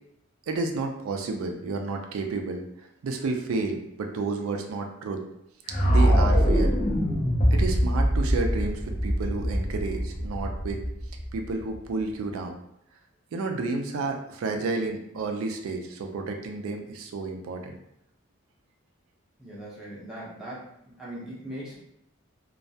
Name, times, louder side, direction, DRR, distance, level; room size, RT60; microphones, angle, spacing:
voice 1, 0.5-2.6 3.0-5.2 5.8-6.7 7.5-10.8 11.3-12.6 13.3-17.8, right 3 dB, 85° right, 4 dB, 0.3 m, -31 dB
sound 1, 5.7-11.8, equal, 35° left, 0.4 m, -23 dB
voice 2, 19.4-21.8, right 1 dB, 5° right, -8 dB, 0.6 m, -40 dB
2.2 x 2.1 x 2.6 m, 0.75 s
head